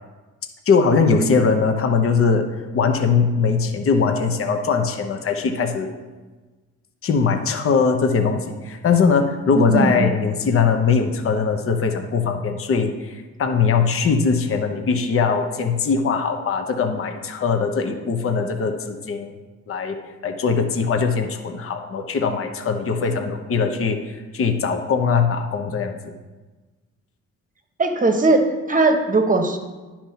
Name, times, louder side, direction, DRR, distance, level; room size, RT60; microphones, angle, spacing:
voice 1, 0.7-2.5 2.7-5.9 7.0-19.3 19.7-20.0 20.2-26.0, left 5 dB, 45° left, 6 dB, 0.9 m, -21 dB
voice 2, 9.5-10.0 23.0-23.2 23.6-23.7 27.8-29.6, right 3 dB, 25° right, 5 dB, 1.1 m, -20 dB
10.0 x 4.3 x 5.6 m, 1.3 s
cardioid pair, 90°, 30 cm